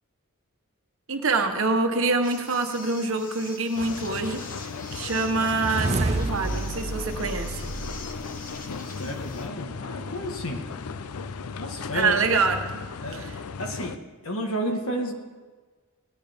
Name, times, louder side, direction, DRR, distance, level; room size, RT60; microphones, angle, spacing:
voice 1, 1.1-4.4 4.9-7.6 11.9-12.8 13.1-13.3, right 3 dB, 65° right, 5 dB, 1.2 m, -25 dB
sound 1, 2.2-9.5, left 3 dB, 40° left, 1.5 m, -44 dB
sound 2, 3.7-14.0, left 5 dB, 90° left, 0.5 m, -36 dB
sound 3, 5.3-8.6, right 2 dB, 30° right, 0.5 m, -30 dB
voice 2, 9.0-10.7 11.6-12.3 13.0-13.3 13.6-15.1, equal, 70° left, 3 dB, 1.8 m, -31 dB
17.5 x 10.5 x 5.2 m, 1.4 s
head